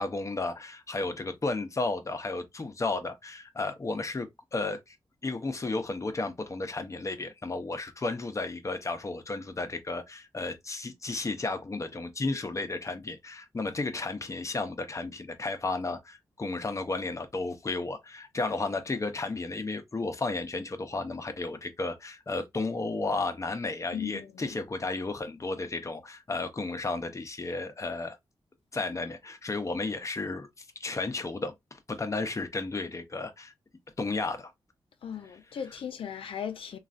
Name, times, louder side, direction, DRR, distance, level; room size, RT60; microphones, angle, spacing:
voice 1, 0.0-5.0 5.2-28.2 28.7-33.5 34.0-34.5 35.2-35.4 35.7-35.8, left 3 dB, 35° left, 0.7 m, -33 dB
voice 2, 23.9-24.3 35.0-36.8, left 8 dB, 75° left, 0.5 m, -37 dB
3.1 x 2.4 x 2.5 m
cardioid pair, 65°, 9 cm